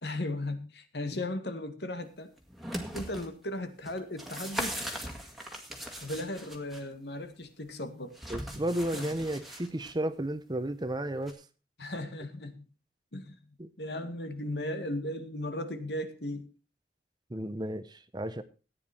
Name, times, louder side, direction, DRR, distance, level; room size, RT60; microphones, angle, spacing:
voice 1, 0.0-2.3 2.9-4.8 6.0-8.1 8.9-9.1 11.8-12.6 13.1-13.4 13.8-16.5, left 1 dB, 70° left, 9 dB, 1.8 m, -36 dB
sound 1, 2.4-3.3 3.9-6.8 8.1-9.9 11.3-11.4, equal, ahead, 2.0 m, -39 dB
voice 2, 8.3-11.4 13.6-13.7 17.3-18.4, right 1 dB, 25° right, 12 dB, 0.9 m, -33 dB
14.5 x 9.5 x 4.4 m, 0.33 s
head